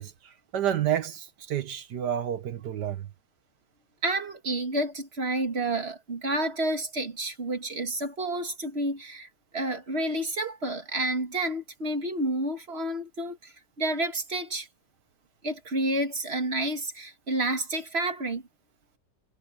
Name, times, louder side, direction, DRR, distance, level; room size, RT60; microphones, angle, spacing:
voice 1, 0.0-3.1, right 10 dB, 65° right, 1.7 m, -30 dB
voice 2, 4.0-9.3 9.5-14.7 15.4-18.4, right 1 dB, 35° right, 2.2 m, -30 dB
omnidirectional pair, 2.0 m